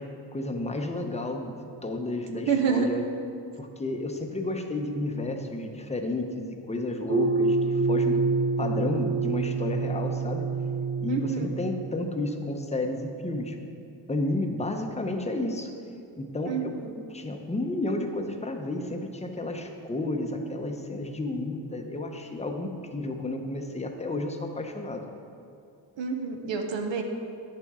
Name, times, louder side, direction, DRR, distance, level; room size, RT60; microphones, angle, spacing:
voice 1, 0.0-3.0 3.6-8.2 8.6-10.5 11.0-13.6 14.1-15.7 16.2-16.7 17.1-25.0, left 2 dB, 15° left, 4 dB, 0.6 m, -31 dB
voice 2, 2.5-2.9 11.1-11.5 16.4-16.9 26.0-27.0, right 6 dB, 75° right, 4 dB, 0.9 m, -28 dB
sound 1, 7.1-12.3, right 4 dB, 25° right, 0.5 m, -27 dB
9.6 x 7.1 x 3.6 m, 2.6 s
wide cardioid pair, 105°, 45 cm